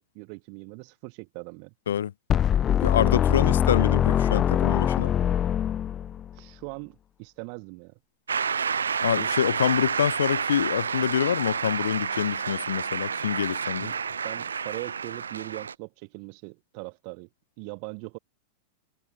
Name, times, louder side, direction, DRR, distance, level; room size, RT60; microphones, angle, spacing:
voice 1, 0.0-1.7 6.3-7.9 9.0-9.3 13.8-14.0 14.2-17.3 17.6-18.2, right 40 dB or more, 45° right, 5.7 m, -40 dB
sound 1, 2.3-6.3, left 9 dB, 25° left, 0.9 m, -23 dB
voice 2, 2.8-5.1 9.0-13.9, left 9 dB, 65° left, 1.2 m, -26 dB
Shout / Cheering / Applause, 8.3-15.7, right 6 dB, 70° right, 3.2 m, -29 dB
figure-of-eight pair, 90°, 0 cm